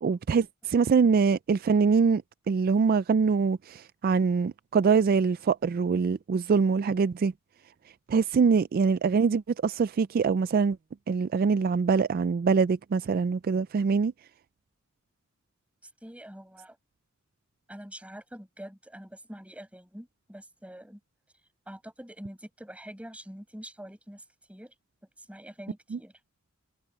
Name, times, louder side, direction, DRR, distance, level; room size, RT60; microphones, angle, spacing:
voice 1, 0.0-7.3 8.1-10.8 11.1-14.1 25.9-26.0, right 5 dB, 45° right, 0.3 m, -24 dB
voice 2, 15.8-16.8 17.7-21.0 21.7-24.7 25.2-26.1, equal, 5° right, 5.9 m, -45 dB
head